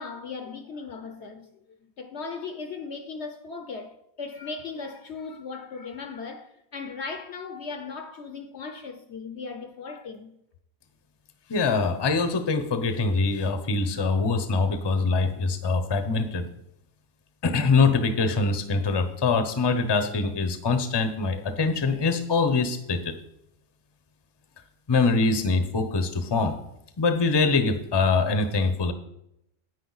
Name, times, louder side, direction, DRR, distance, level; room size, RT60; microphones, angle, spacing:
voice 1, 0.0-1.6 2.0-10.3, left 4 dB, 60° left, 0.9 m, -37 dB
voice 2, 11.5-16.4 17.4-23.1 24.9-26.5 27.0-28.9, left 4 dB, 25° left, 0.7 m, -24 dB
9.9 x 9.0 x 4.0 m
omnidirectional pair, 1.5 m